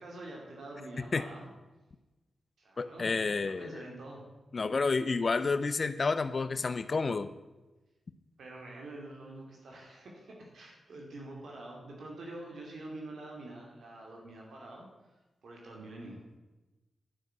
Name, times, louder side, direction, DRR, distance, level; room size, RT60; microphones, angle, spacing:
voice 1, 0.0-1.5 2.6-3.2 3.6-4.2 8.4-15.2 15.4-16.2, right 2 dB, 80° right, -1 dB, 2.4 m, -46 dB
voice 2, 2.8-3.8 4.5-7.3, left 4 dB, 55° left, 12 dB, 0.7 m, -30 dB
11.0 x 6.0 x 8.0 m, 1.1 s
cardioid pair, 50°, 0 cm